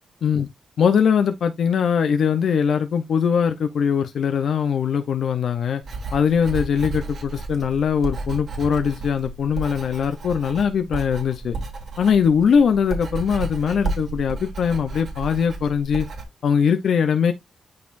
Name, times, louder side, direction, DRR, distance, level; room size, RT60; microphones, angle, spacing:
voice 1, 0.8-5.8 6.1-11.6 12.0-16.1 16.4-17.3, left 7 dB, 60° left, 0.8 m, -21 dB
Writing, 5.8-16.2, right 3 dB, 50° right, 2.9 m, -32 dB
12.0 x 4.2 x 2.6 m
wide cardioid pair, 175°, 0 cm